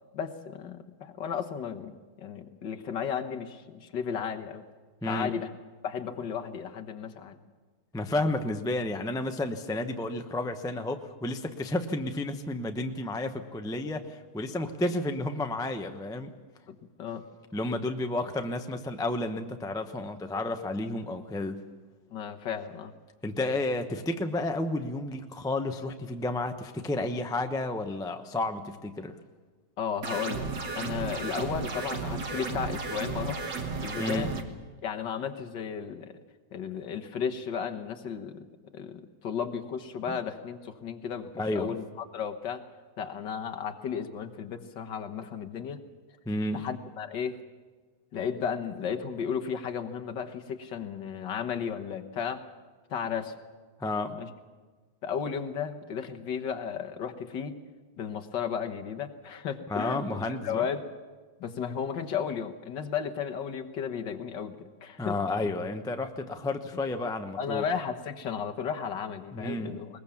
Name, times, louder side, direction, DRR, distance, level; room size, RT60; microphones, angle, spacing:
voice 1, 0.1-4.6 5.1-5.5 5.8-7.4 16.7-17.2 22.1-22.9 29.8-30.5 30.7-34.3 34.8-36.2 36.5-38.4 38.7-41.8 42.1-42.6 43.0-45.8 46.5-47.4 48.1-52.4 52.9-53.3 54.2-54.3 55.0-57.6 58.0-60.0 60.4-60.8 61.4-65.2 67.4-69.9, left 7 dB, 65° left, 5 dB, 1.9 m, -34 dB
voice 2, 5.0-5.3 7.9-16.3 17.5-21.7 23.2-29.2 34.0-34.3 40.1-40.2 41.3-41.7 46.2-46.7 53.8-54.2 59.7-60.7 65.0-67.6 69.3-69.8, left 2 dB, 5° left, 6 dB, 0.5 m, -31 dB
sound 1, 30.0-34.4, right 4 dB, 60° right, 2.2 m, -34 dB
21.0 x 20.5 x 7.2 m, 1.4 s
omnidirectional pair, 2.2 m